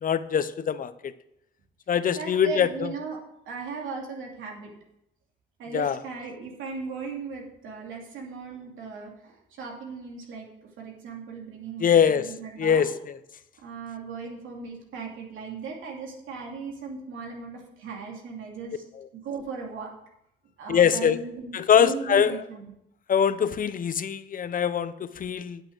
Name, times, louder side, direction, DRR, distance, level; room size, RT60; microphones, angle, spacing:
voice 1, 0.0-1.1 1.9-2.9 5.7-6.0 11.8-12.2 12.6-12.9 20.7-21.2 21.5-22.3 23.1-25.6, left 8 dB, 45° left, 13 dB, 0.7 m, -23 dB
voice 2, 2.1-3.2 3.4-4.7 5.6-10.5 10.8-13.0 13.6-18.8 19.1-19.9 20.6-22.7, right 5 dB, 85° right, 0 dB, 2.7 m, -37 dB
9.9 x 6.6 x 6.3 m, 0.81 s
cardioid pair, 90°, 20 cm